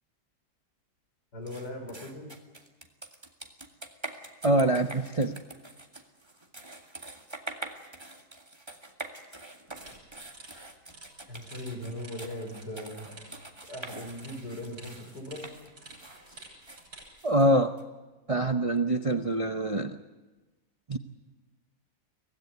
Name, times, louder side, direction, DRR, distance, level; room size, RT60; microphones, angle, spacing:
voice 1, 1.3-2.3 11.3-13.1 13.7-15.5, left 1 dB, 85° left, 3 dB, 5.6 m, -39 dB
sound 1, 1.5-17.8, right 2 dB, 15° right, 1.9 m, -45 dB
voice 2, 4.4-5.4 17.2-17.8 18.3-20.0 20.9-21.0, right 1 dB, 40° right, 7 dB, 0.4 m, -25 dB
sound 2, 9.7-17.1, right 2 dB, 65° right, 7.7 m, -52 dB
24.0 x 17.0 x 9.3 m, 1.2 s
omnidirectional pair, 1.8 m